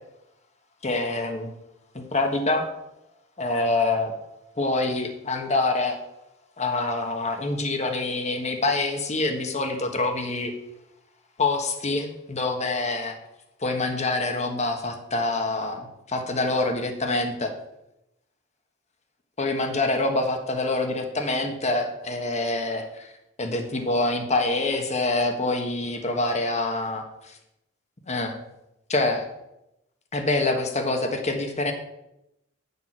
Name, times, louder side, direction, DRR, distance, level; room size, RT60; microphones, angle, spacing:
voice 1, 0.8-1.5 1.9-2.7 3.4-4.1 4.6-6.0 6.6-10.5 11.4-13.2 13.6-17.5 19.4-23.1 23.4-27.0 28.1-28.4 28.9-29.3 30.1-31.7, left 2 dB, 35° left, 5 dB, 1.4 m, -26 dB
9.5 x 6.8 x 6.1 m, 0.87 s
head